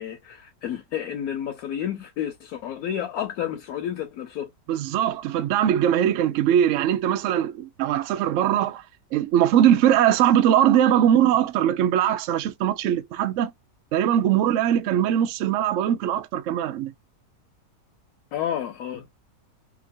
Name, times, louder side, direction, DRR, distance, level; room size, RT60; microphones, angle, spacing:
voice 1, 0.0-4.5 18.3-19.1, left 10 dB, 70° left, 1.0 m, -30 dB
voice 2, 4.7-8.8 9.1-13.5 13.9-16.9, right 10 dB, 85° right, 0.6 m, -21 dB
2.9 x 2.5 x 2.5 m
omnidirectional pair, 1.8 m